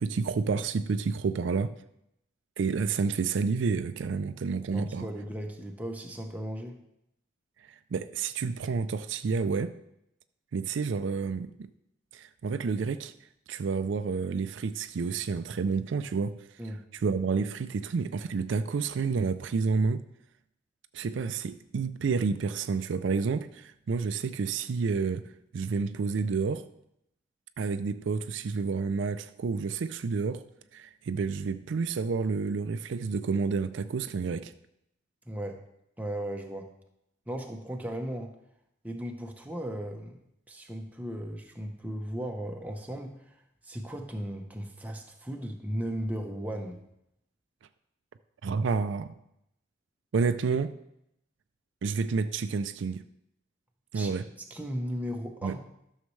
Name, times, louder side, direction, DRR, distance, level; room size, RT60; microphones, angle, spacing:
voice 1, 0.0-1.7 2.6-5.1 7.7-9.7 10.5-11.7 12.1-13.1 13.5-16.4 16.9-20.0 20.9-26.6 27.6-30.4 30.7-34.5 48.4-49.1 50.1-50.7 51.8-53.0 53.9-54.3 55.4-55.6, right 5 dB, 75° right, 0.4 m, -29 dB
voice 2, 4.7-6.8 16.6-16.8 35.2-35.6 36.0-36.7 37.3-38.3 38.8-40.2 40.5-43.4 43.6-46.8 53.9-54.1 54.4-55.6, equal, 10° right, 0.8 m, -36 dB
13.0 x 6.4 x 3.2 m
head